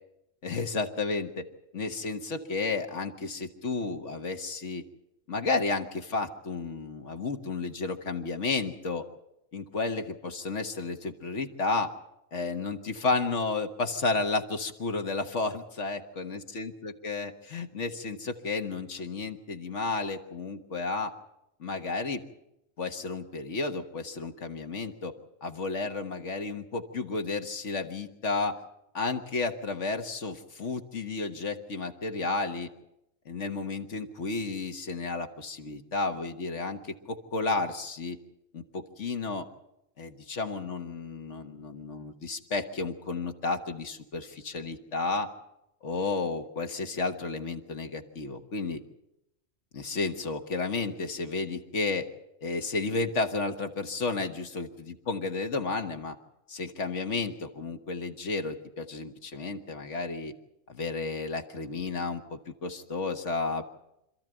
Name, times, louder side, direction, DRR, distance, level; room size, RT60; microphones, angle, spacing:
voice 1, 0.4-1.4 1.7-4.8 5.3-9.0 9.5-11.9 12.3-21.1 21.6-22.2 22.8-25.1 25.4-28.6 28.9-32.7 33.2-38.2 38.5-39.5 40.0-45.3 45.8-48.8 49.7-52.1 52.4-56.1 56.5-60.3 60.7-63.7, left 3 dB, 65° left, 6 dB, 1.6 m, -32 dB
26.5 x 13.5 x 9.0 m, 0.86 s
omnidirectional pair, 1.3 m